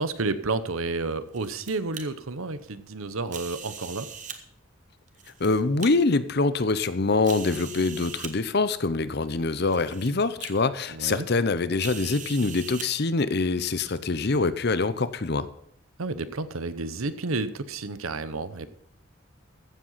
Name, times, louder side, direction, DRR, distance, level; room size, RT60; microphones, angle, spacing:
voice 1, 0.0-4.1 10.9-11.3 16.0-18.7, right 3 dB, 85° right, 13 dB, 1.0 m, -31 dB
sound 1, 1.3-2.0 3.3-4.4 5.1-5.9 6.5-6.6 7.2-8.3 9.2-9.3 9.7-10.1 10.4-10.5 11.8-12.9, right 7 dB, 35° right, 1.3 m, -40 dB
voice 2, 5.4-15.5, left 3 dB, 50° left, 14 dB, 0.7 m, -25 dB
14.5 x 7.7 x 5.7 m, 0.71 s
head